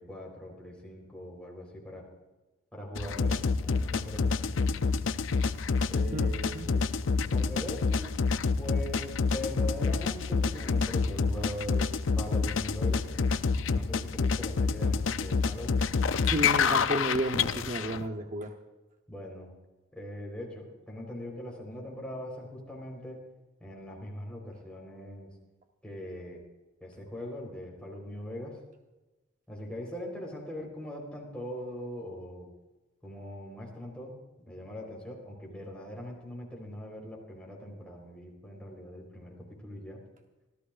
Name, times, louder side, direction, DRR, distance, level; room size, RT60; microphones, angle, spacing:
voice 1, 0.0-2.0 2.7-4.7 5.9-6.9 7.2-8.2 8.6-13.1 13.7-15.7 19.1-19.5 19.9-23.2 23.6-25.3 25.8-26.4 26.8-28.6 29.5-32.5 33.0-34.2 34.5-40.0, equal, 5° left, -2 dB, 4.0 m, -41 dB
sound 1, 3.0-18.1, left 5 dB, 85° left, 0.5 m, -28 dB
voice 2, 16.2-18.5, right 1 dB, 40° right, 4 dB, 0.9 m, -32 dB
26.0 x 13.5 x 2.5 m, 1.1 s
head